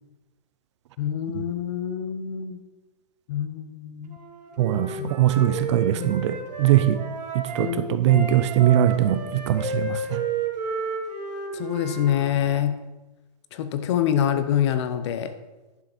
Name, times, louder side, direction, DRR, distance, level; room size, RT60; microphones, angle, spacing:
voice 1, 1.0-2.6 3.3-4.2 4.6-4.7 5.0-5.1 6.0-6.2 7.6-8.3 11.5-12.8 13.5-15.3, left 10 dB, 40° left, 11 dB, 0.8 m, -26 dB
Wind instrument woodwind instrument, 4.1-7.7 8.1-12.2, right 4 dB, 80° right, 2.4 m, -32 dB
voice 2, 4.6-4.9 5.2-7.0 7.6-10.0, right 12 dB, 45° right, 12 dB, 0.6 m, -21 dB
11.0 x 6.6 x 4.3 m, 1.1 s
hypercardioid pair, 160°, 21 cm